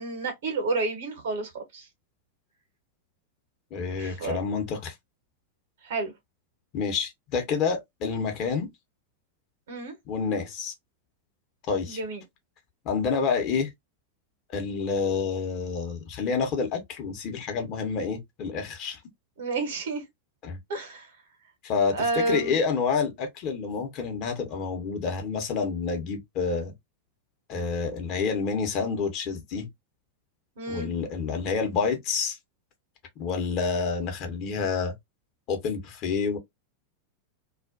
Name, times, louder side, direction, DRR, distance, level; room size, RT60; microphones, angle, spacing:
voice 1, 0.0-1.9 4.0-4.4 5.8-6.1 9.7-9.9 11.9-12.2 19.4-20.0 20.7-21.1 21.9-22.6 30.6-30.9, right 3 dB, 60° right, 1.0 m, -30 dB
voice 2, 3.7-4.9 6.7-8.7 10.1-10.7 11.7-12.0 12.8-13.7 14.5-19.0 20.4-20.6 21.6-22.0 22.3-26.7 27.5-29.7 30.7-32.4 33.2-34.9 35.5-36.4, left 5 dB, 40° left, 0.9 m, -28 dB
2.4 x 2.2 x 2.4 m
figure-of-eight pair, 90°, 0 cm